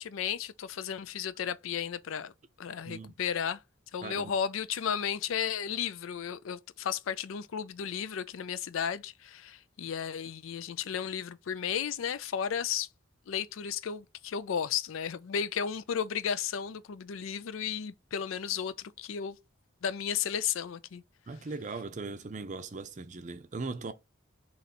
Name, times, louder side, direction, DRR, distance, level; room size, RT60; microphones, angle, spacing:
voice 1, 0.0-2.3 2.6-3.6 3.9-12.9 13.3-19.4 19.8-21.0, left 8 dB, 85° left, 0.4 m, -34 dB
voice 2, 2.9-3.2 4.0-4.3 21.3-23.9, right 3 dB, 40° right, 0.5 m, -39 dB
3.8 x 3.1 x 4.3 m
head